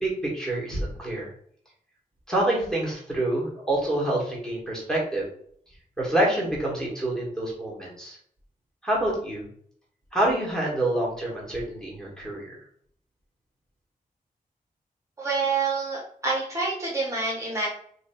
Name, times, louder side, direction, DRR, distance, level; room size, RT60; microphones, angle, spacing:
voice 1, 0.0-1.3 2.3-5.2 6.0-8.2 8.8-9.4 10.1-12.4, right 1 dB, 5° left, -4 dB, 1.3 m, -27 dB
voice 2, 15.2-17.7, right 4 dB, 20° right, -4 dB, 0.7 m, -27 dB
2.9 x 2.6 x 4.3 m, 0.62 s
wide cardioid pair, 140°, 15 cm